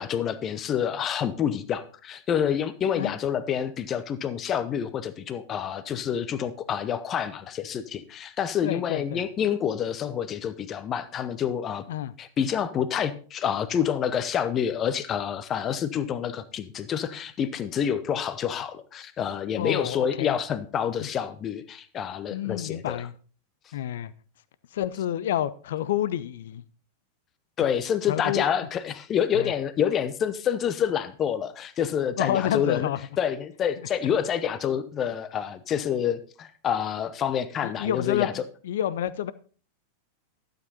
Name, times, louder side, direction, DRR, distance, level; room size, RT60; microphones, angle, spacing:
voice 1, 0.0-11.8 12.2-23.1 27.6-32.9 33.2-38.4, left 8 dB, 30° left, 14 dB, 0.8 m, -28 dB
voice 2, 8.6-9.2 11.9-12.1 19.6-20.3 21.0-21.1 22.3-23.1 23.7-24.1 24.7-26.6 28.1-28.4 29.4-29.5 32.2-33.0 37.6-38.3 38.6-39.3, left 11 dB, 60° left, 18 dB, 0.6 m, -28 dB
12.0 x 7.8 x 4.2 m, 0.39 s
figure-of-eight pair, 90°, 0 cm